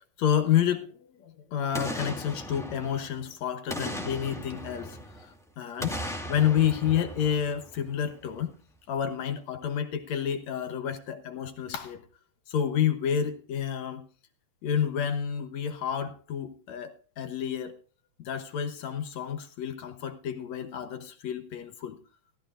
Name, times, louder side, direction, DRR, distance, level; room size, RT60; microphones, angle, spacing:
voice 1, 0.2-0.9 1.2-6.0 6.3-8.6 8.9-12.0 12.5-14.1 14.6-17.7 18.2-22.0, left 9 dB, 65° left, 2.3 m, -29 dB
Boom, 1.7-3.3 3.7-5.3 5.8-8.0 8.4-8.5, equal, ahead, 1.7 m, -37 dB
17.5 x 13.5 x 2.4 m
omnidirectional pair, 3.5 m